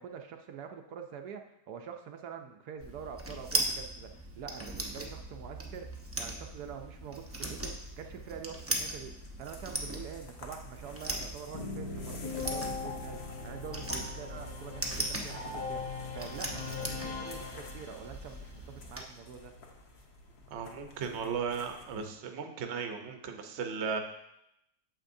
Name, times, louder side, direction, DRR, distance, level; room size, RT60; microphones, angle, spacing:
voice 1, 0.0-19.5, right 7 dB, 75° right, 4 dB, 1.1 m, -45 dB
sound 1, 2.8-19.0, right 1 dB, 20° right, 0.4 m, -39 dB
sound 2, 7.2-22.1, left 3 dB, 45° left, 1.0 m, -53 dB
sound 3, 11.5-18.3, left 4 dB, 30° left, 0.6 m, -40 dB
voice 2, 20.5-24.0, right 6 dB, 50° right, 5 dB, 0.9 m, -36 dB
8.9 x 7.3 x 2.6 m, 0.82 s
omnidirectional pair, 1.7 m